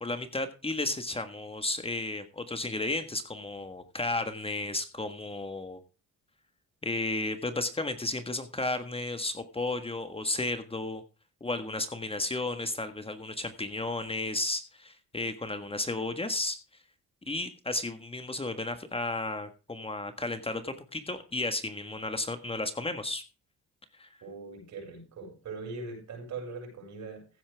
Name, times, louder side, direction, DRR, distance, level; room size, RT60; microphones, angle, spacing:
voice 1, 0.0-5.8 6.8-11.0 11.4-16.6 17.3-23.2 24.0-24.1, left 2 dB, 20° left, 1.5 m, -33 dB
voice 2, 24.2-27.3, right 4 dB, 65° right, 7.0 m, -41 dB
15.5 x 8.6 x 3.5 m
cardioid pair, 90°, 30 cm